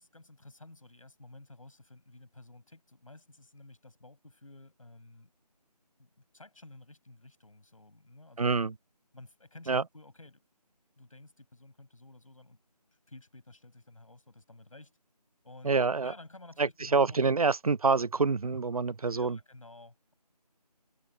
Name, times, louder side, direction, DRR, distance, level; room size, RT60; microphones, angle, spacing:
voice 1, 0.0-5.3 6.0-8.5 9.1-10.5 11.0-12.6 13.1-15.0 15.4-15.8 16.0-17.2 19.1-20.1, left 2 dB, 55° left, 7.0 m, -53 dB
voice 2, 8.4-8.7 9.7-9.8 15.6-16.1 16.6-19.4, right 4 dB, 60° right, 0.4 m, -27 dB
figure-of-eight pair, 165°, 21 cm